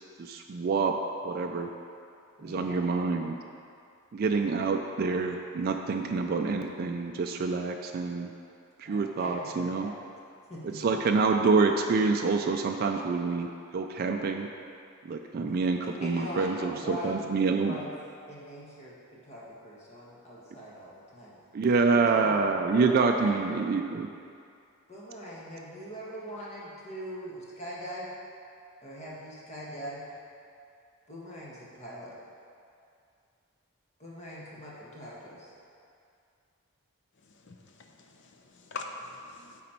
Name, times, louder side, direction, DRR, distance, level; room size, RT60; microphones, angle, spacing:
voice 1, 0.2-0.9 1.2-1.7 2.4-3.3 4.1-8.3 8.8-9.9 10.7-13.5 13.7-14.5 15.0-17.8 21.5-24.1, right 4 dB, 45° right, 4 dB, 0.3 m, -27 dB
voice 2, 2.4-2.8 8.8-10.1 10.5-10.8 15.8-17.3 17.6-17.9 18.3-18.9 19.2-21.3 21.9-22.3 22.7-23.5 24.9-28.1 28.8-30.0 31.1-32.1 34.0-35.5, equal, 30° left, -6 dB, 1.4 m, -41 dB
voice 3, 37.2-39.6, left 4 dB, 55° left, 3 dB, 0.7 m, -44 dB
9.2 x 4.2 x 4.4 m, 2.4 s
head